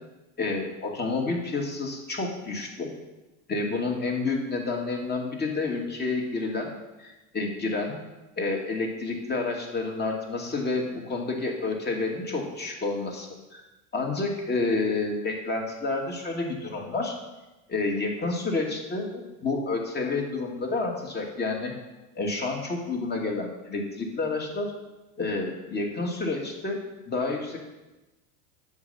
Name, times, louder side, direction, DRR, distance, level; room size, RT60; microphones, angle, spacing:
voice 1, 0.4-2.9 3.5-6.7 7.0-8.0 8.4-13.6 13.9-17.2 17.7-21.7 22.1-24.7 25.2-26.8 27.1-27.6, left 3 dB, 20° left, 1 dB, 2.5 m, -29 dB
9.7 x 7.5 x 7.2 m, 1.1 s
supercardioid pair, 120°, 46 cm